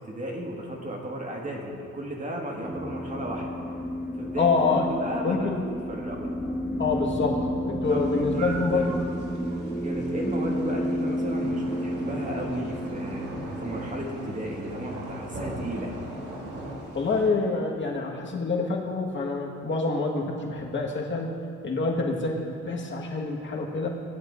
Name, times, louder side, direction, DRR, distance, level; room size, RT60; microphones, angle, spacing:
voice 1, 0.1-3.6 4.2-6.3 7.9-8.9 9.8-13.3 13.6-16.0, right 1 dB, 25° right, -1 dB, 1.8 m, -34 dB
sound 1, 2.6-17.2, equal, 5° right, 1.3 m, -32 dB
voice 2, 4.4-4.8 5.2-5.6 6.8-8.9 16.9-21.3 21.6-23.9, left 4 dB, 40° left, -1 dB, 1.6 m, -26 dB
sound 2, 7.8-17.3, right 2 dB, 75° right, 2.0 m, -39 dB
18.0 x 10.5 x 2.6 m, 2.5 s
cardioid pair, 90°, 30 cm